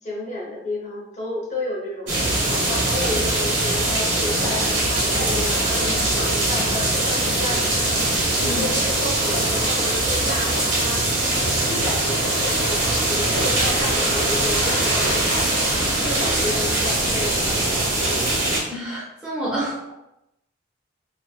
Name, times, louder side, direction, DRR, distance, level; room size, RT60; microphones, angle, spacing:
voice 1, 0.0-11.1 11.7-17.6 18.0-18.2, left 1 dB, 35° left, -3 dB, 0.6 m, -32 dB
sound 1, 2.1-18.6, right 1 dB, 75° right, 1.0 m, -22 dB
sound 2, 4.4-4.8 5.1-5.5 5.8-6.2 6.5-6.9 7.2-7.6 7.9-8.3 8.6-9.0 9.3-9.7, left 2 dB, 80° left, 0.5 m, -37 dB
voice 2, 18.7-19.9, right 1 dB, 5° right, -7 dB, 0.5 m, -29 dB
2.4 x 2.4 x 2.3 m, 0.86 s
head